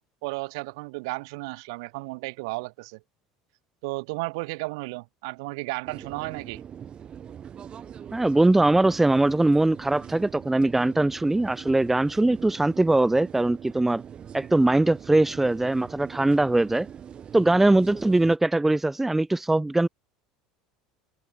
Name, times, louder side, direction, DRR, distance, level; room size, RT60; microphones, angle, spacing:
voice 1, 0.0-3.0 3.8-6.6, right 26 dB, 70° right, 7.0 m, -34 dB
sound 1, 5.8-18.4, right 8 dB, 40° right, 6.3 m, -42 dB
voice 2, 8.1-14.0 14.3-16.9 17.3-19.9, right 2 dB, 10° right, 0.7 m, -21 dB
hypercardioid pair, 80°, 3 cm